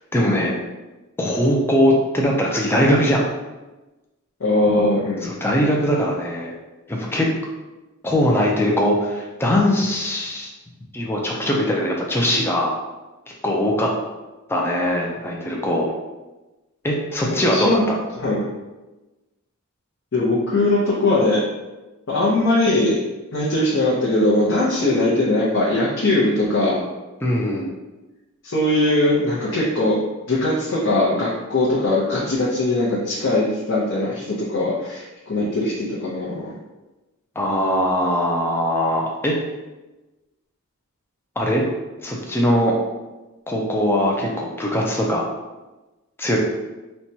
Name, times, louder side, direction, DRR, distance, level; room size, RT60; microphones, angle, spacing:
voice 1, 0.1-0.6 1.2-3.3 5.2-6.5 6.9-7.3 8.0-10.5 10.9-12.7 13.4-13.9 14.5-15.9 16.8-18.0 27.2-27.7 37.4-39.3 41.4-41.6 42.0-42.7 43.5-45.3 46.2-46.4, equal, 10° left, -2 dB, 0.4 m, -21 dB
voice 2, 4.4-5.3 17.3-17.8 18.2-18.5 20.1-21.4 22.1-23.0 23.3-26.8 28.4-30.0 30.3-36.5, left 2 dB, 60° left, -7 dB, 0.7 m, -20 dB
4.3 x 2.2 x 2.7 m, 1.1 s
head